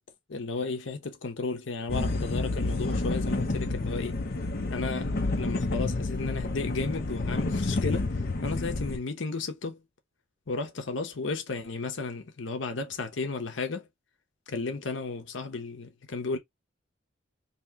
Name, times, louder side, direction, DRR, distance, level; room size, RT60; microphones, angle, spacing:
voice 1, 0.3-4.1 4.7-8.2 8.4-9.8 10.5-13.9 14.5-16.4, left 3 dB, 85° left, 0.8 m, -34 dB
sound 1, 1.9-9.0, left 2 dB, 55° left, 0.7 m, -29 dB
2.9 x 2.8 x 3.4 m
head